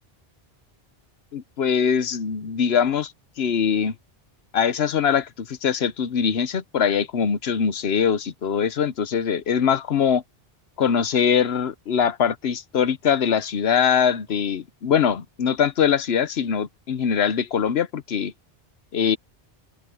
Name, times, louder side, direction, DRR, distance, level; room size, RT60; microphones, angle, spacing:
voice 1, 1.3-3.1 3.4-3.9 4.5-10.2 10.8-18.3 18.9-19.2, left 7 dB, 80° left, 1.1 m, -22 dB
omnidirectional pair, 1.0 m